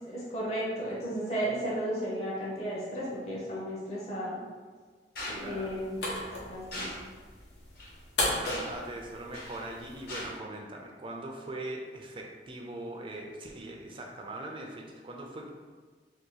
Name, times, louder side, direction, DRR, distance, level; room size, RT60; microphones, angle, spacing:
voice 1, 0.1-4.4 5.4-6.0 6.4-6.9, equal, 40° left, -6 dB, 0.7 m, -34 dB
sound 1, 5.2-5.4 6.7-7.0 7.8-7.9 8.5-8.8 9.3-9.6 10.1-10.3, left 1 dB, 60° left, 1.0 m, -38 dB
sound 2, 5.3-10.4, left 1 dB, 85° left, 0.9 m, -37 dB
voice 2, 5.3-5.9 8.3-15.5, right 1 dB, 30° right, 1 dB, 0.3 m, -41 dB
2.8 x 2.7 x 3.8 m, 1.5 s
head